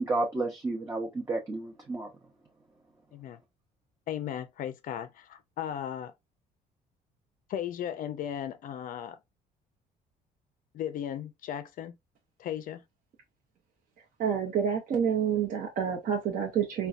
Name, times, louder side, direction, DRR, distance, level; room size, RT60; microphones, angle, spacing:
voice 1, 0.0-2.1, right 2 dB, 20° right, 0.7 m, -31 dB
voice 2, 4.1-6.1 7.5-9.2 10.7-12.0 12.4-12.8, left 10 dB, 55° left, 0.4 m, -36 dB
voice 3, 14.2-16.9, right 8 dB, 55° right, 0.8 m, -28 dB
3.9 x 2.2 x 2.4 m
cardioid pair, 110°, 17 cm